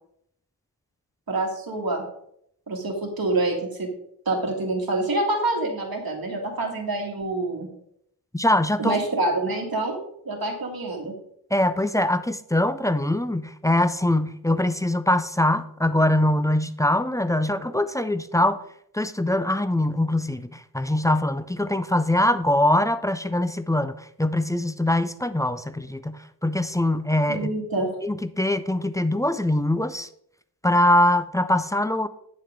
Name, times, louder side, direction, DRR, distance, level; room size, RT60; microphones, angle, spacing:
voice 1, 1.3-2.0 2.7-3.9 4.3-7.7 8.8-10.0 10.3-11.1 27.3-27.9, right 2 dB, 55° right, 2.1 m, -26 dB
voice 2, 8.3-9.0 11.5-18.6 18.9-27.5 28.0-30.1 30.6-32.1, left 1 dB, 10° left, 0.3 m, -23 dB
8.5 x 7.5 x 3.6 m
wide cardioid pair, 110°, 41 cm